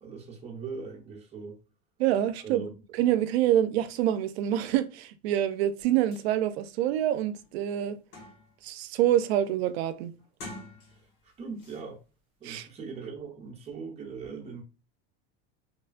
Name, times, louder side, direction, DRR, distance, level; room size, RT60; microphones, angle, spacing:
voice 1, 0.0-1.6 2.4-2.7 11.2-12.0 12.4-14.6, right 5 dB, 20° right, 0.8 m, -40 dB
voice 2, 2.0-2.7 3.0-8.0 8.6-10.1 12.4-12.7, right 11 dB, 85° right, 0.5 m, -26 dB
sound 1, 5.8-5.9 6.1-6.3 6.8-6.9 7.3-8.7 9.1-9.4 10.2-11.2 11.6-11.8, left 2 dB, 70° left, 1.4 m, -47 dB
3.0 x 2.2 x 2.4 m
supercardioid pair, 135°, 31 cm